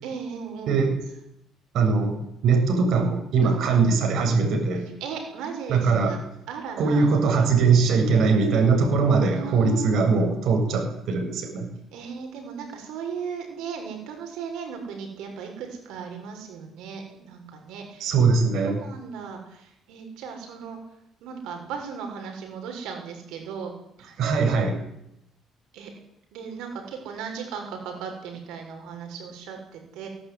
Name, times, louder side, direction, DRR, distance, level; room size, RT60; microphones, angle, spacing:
voice 1, 0.0-0.8 3.4-3.7 5.0-6.2 6.5-7.8 9.2-10.1 11.9-18.1 18.7-20.8 21.2-23.7 24.0-24.1 25.7-25.9 26.3-30.1, right 6 dB, 85° right, 3 dB, 7.0 m, -36 dB
voice 2, 1.7-2.2 2.4-4.9 5.7-6.1 6.8-11.7 18.0-18.8 24.2-24.8, right 4 dB, 60° right, 3 dB, 7.5 m, -21 dB
23.0 x 19.0 x 10.0 m, 0.79 s
cardioid pair, 145°, 0 cm